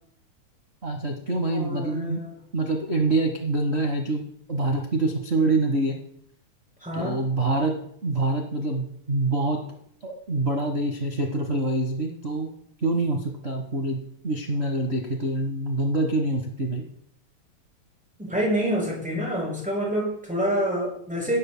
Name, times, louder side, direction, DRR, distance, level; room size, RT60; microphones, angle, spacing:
voice 1, 0.8-2.2 2.5-6.0 6.9-7.7 8.0-9.6 10.0-12.5 12.8-14.0 14.2-16.8, right 2 dB, 60° right, 0 dB, 0.6 m, -25 dB
voice 2, 1.5-2.3 6.8-7.2 18.2-21.4, equal, ahead, -3 dB, 5.7 m, -27 dB
17.5 x 13.0 x 2.2 m, 0.70 s
omnidirectional pair, 3.4 m